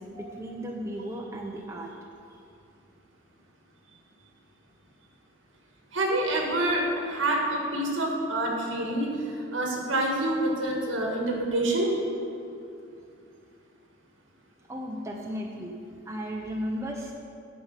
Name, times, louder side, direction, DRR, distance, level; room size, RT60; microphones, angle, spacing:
voice 1, 0.0-2.0 14.7-15.7 16.1-17.1, equal, 15° right, 0 dB, 0.6 m, -35 dB
voice 2, 5.9-9.1 9.5-11.9, right 1 dB, 70° right, -1 dB, 1.7 m, -27 dB
9.6 x 5.1 x 6.6 m, 2.5 s
head